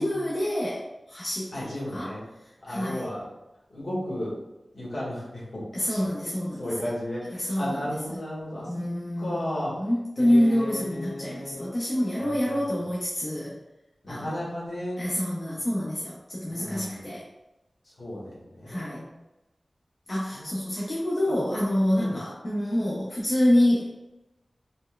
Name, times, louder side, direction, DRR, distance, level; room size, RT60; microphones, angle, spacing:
voice 1, 0.0-2.1 2.7-3.0 5.7-6.6 7.3-7.8 8.1-8.2 8.7-13.5 14.1-14.4 15.0-17.2 18.7-19.0 20.1-23.9, left 1 dB, 50° left, -6 dB, 0.7 m, -27 dB
voice 2, 1.5-2.2 2.6-3.2 3.7-4.3 4.7-6.0 6.6-8.9 9.2-9.9 10.2-11.7 12.2-12.5 14.0-15.0 16.5-17.0 18.0-19.1 20.3-20.5 21.3-21.4 22.0-22.2, left 1 dB, 75° left, -7 dB, 1.4 m, -34 dB
4.2 x 2.1 x 2.3 m, 0.96 s
cardioid pair, 40°, 0 cm